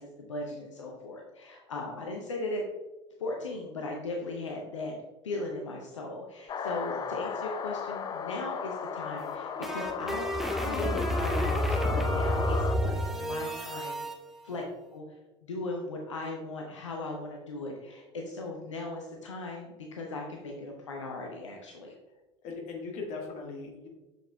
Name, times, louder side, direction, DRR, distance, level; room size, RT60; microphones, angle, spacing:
voice 1, 0.0-2.6 3.2-5.0 5.2-14.0 14.4-14.6 14.9-15.2 15.4-21.9, left 2 dB, 80° left, 0 dB, 0.7 m, -38 dB
sound 1, 6.5-12.8, left 6 dB, 25° left, 0.4 m, -35 dB
sound 2, 9.2-14.1, equal, ahead, 0.8 m, -30 dB
voice 2, 22.4-23.9, left 4 dB, 50° left, 1 dB, 1.6 m, -39 dB
6.8 x 6.3 x 2.2 m, 1.1 s
figure-of-eight pair, 70°, 16 cm